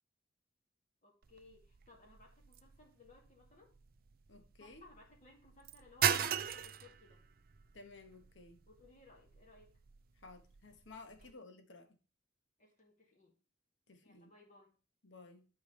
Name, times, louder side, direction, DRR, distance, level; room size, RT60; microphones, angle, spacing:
voice 1, 1.0-3.7 4.6-7.2 8.7-9.7 11.2-11.3 12.6-13.3 14.0-14.7, left 2 dB, 40° left, 2.2 m, -62 dB
sound 1, 1.2-11.3, right 8 dB, 50° right, 0.5 m, -40 dB
voice 2, 4.3-4.8 7.7-8.6 10.2-11.9 13.9-14.3 15.0-15.5, left 3 dB, 80° left, 1.3 m, -55 dB
11.5 x 4.8 x 3.3 m
head